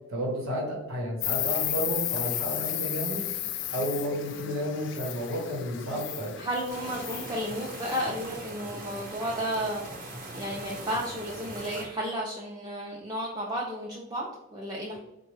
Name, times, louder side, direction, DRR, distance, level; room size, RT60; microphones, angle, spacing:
voice 1, 0.1-3.2 3.7-6.3, equal, 90° right, -2 dB, 1.1 m, -32 dB
Insect, 1.2-8.0, left 12 dB, 60° left, 0.3 m, -33 dB
voice 2, 6.4-15.0, equal, 20° right, -3 dB, 0.4 m, -33 dB
sound 1, 6.7-11.9, right 1 dB, 40° right, 0.8 m, -41 dB
4.0 x 2.2 x 3.1 m, 0.93 s
head